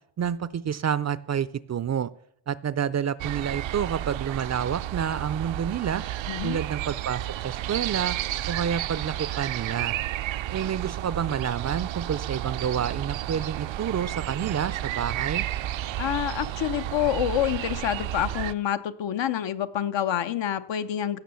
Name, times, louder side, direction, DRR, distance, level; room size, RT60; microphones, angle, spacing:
voice 1, 0.2-2.1 2.5-6.0 6.4-8.2 8.5-10.0 10.5-15.5, right 8 dB, 40° right, 17 dB, 0.4 m, -29 dB
sound 1, 3.2-18.5, right 13 dB, 85° right, 0.6 m, -32 dB
voice 2, 6.3-6.6 16.0-21.2, left 10 dB, 75° left, 11 dB, 0.9 m, -27 dB
16.5 x 7.0 x 6.9 m, 0.72 s
wide cardioid pair, 145°, 45 cm